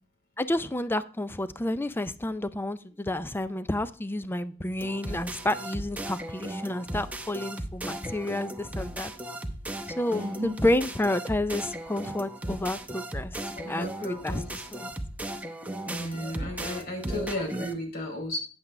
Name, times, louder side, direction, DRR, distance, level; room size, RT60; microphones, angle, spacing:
voice 1, 0.4-9.1 9.9-13.4 13.7-14.4 14.7-14.9, left 1 dB, 10° left, 13 dB, 0.4 m, -30 dB
sound 1, 4.8-17.7, right 1 dB, 5° right, 0.8 m, -36 dB
voice 2, 10.1-10.6 13.5-14.9 15.8-18.4, left 1 dB, 50° left, 3 dB, 3.1 m, -34 dB
8.8 x 8.0 x 3.2 m, 0.41 s
head